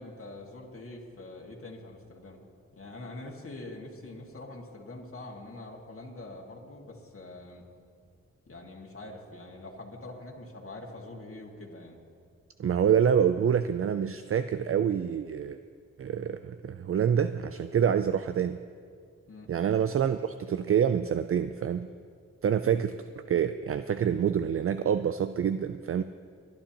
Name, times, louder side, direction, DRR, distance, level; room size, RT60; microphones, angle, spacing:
voice 1, 0.0-2.4 2.7-7.6 8.5-12.0 19.3-19.5, left 2 dB, 45° left, -2 dB, 1.9 m, -44 dB
voice 2, 12.6-15.6 16.0-18.6 19.5-21.9 22.4-23.0 23.3-26.0, right 8 dB, 45° right, 11 dB, 0.4 m, -26 dB
28.5 x 10.5 x 2.9 m, 2.2 s
cardioid pair, 50°, 31 cm